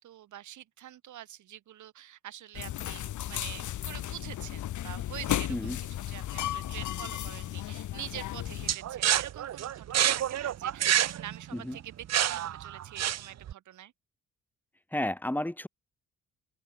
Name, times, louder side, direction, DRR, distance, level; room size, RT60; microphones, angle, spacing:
voice 1, 0.0-13.9, right 12 dB, 75° right, 4.6 m, -46 dB
sound 1, 2.5-8.7, left 12 dB, 75° left, 4.3 m, -35 dB
sound 2, 8.7-13.5, right 11 dB, 60° right, 1.2 m, -28 dB
voice 2, 14.9-15.7, left 1 dB, 5° left, 2.8 m, -32 dB
open air
cardioid pair, 90°, 30 cm